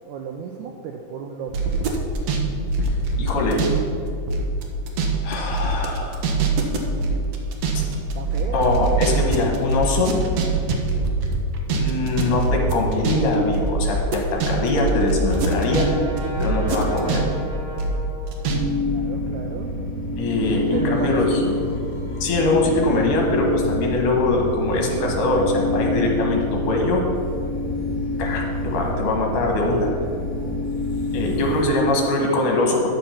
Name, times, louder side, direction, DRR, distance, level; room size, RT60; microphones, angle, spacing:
voice 1, 0.0-1.7 7.9-8.9 18.9-19.7 20.7-21.6, right 6 dB, 85° right, 3 dB, 1.8 m, -33 dB
sound 1, 1.5-3.8 4.1-15.9 16.2-18.6 18.9-19.0, right 3 dB, 70° right, 1.7 m, -23 dB
voice 2, 3.2-3.7 5.2-6.2 7.7-7.8 8.5-10.1 11.7-15.9 16.4-17.2 20.2-21.4 22.2-27.0 28.2-29.9 31.1-32.9, left 2 dB, 65° left, 0 dB, 2.7 m, -22 dB
Brass instrument, 14.3-19.1, equal, 55° right, 2.0 m, -36 dB
sound 2, 18.5-31.6, left 2 dB, 40° left, 1.2 m, -27 dB
10.0 x 6.7 x 5.7 m, 2.5 s
omnidirectional pair, 4.1 m